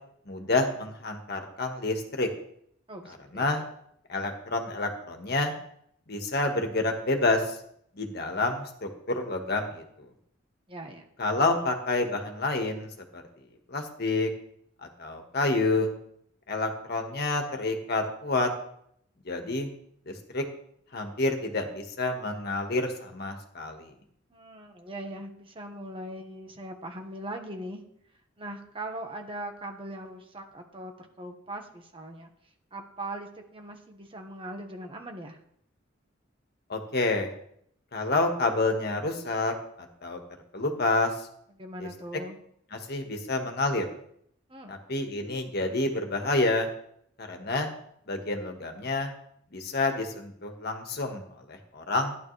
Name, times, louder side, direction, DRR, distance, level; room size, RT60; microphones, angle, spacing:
voice 1, 0.3-2.3 3.3-3.6 4.1-5.5 6.1-7.6 7.9-9.8 11.2-13.2 13.7-14.3 15.0-15.9 16.5-18.5 19.2-19.7 20.1-20.4 20.9-23.9 36.7-37.3 37.9-40.2 40.5-41.3 41.8-41.9 42.7-43.8 44.7-46.7 47.2-47.7 48.1-49.1 49.5-52.2, left 2 dB, 55° left, 4 dB, 1.6 m, -28 dB
voice 2, 2.9-3.6 10.7-11.1 24.3-27.8 28.4-32.3 32.7-35.4 41.6-42.4 44.5-44.7, right 1 dB, 30° right, 3 dB, 1.4 m, -40 dB
14.5 x 10.5 x 3.3 m, 0.69 s
head